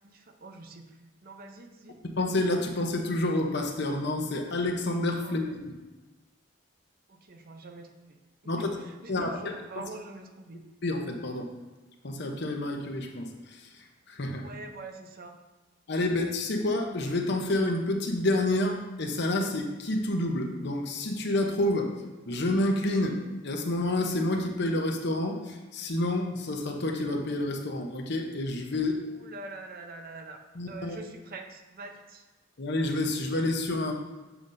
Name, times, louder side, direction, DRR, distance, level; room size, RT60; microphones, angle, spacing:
voice 1, 0.0-2.0 5.2-5.5 7.1-10.6 14.3-15.4 29.1-30.4 30.7-32.3, right 2 dB, 45° right, 5 dB, 0.6 m, -45 dB
voice 2, 2.2-5.8 8.5-8.8 9.1-9.5 10.8-11.5 12.0-14.5 15.9-21.9 22.3-23.2 23.4-29.0 30.5-31.0 32.6-33.9, left 1 dB, 55° left, 3 dB, 0.8 m, -29 dB
7.3 x 6.9 x 2.6 m, 1.2 s
head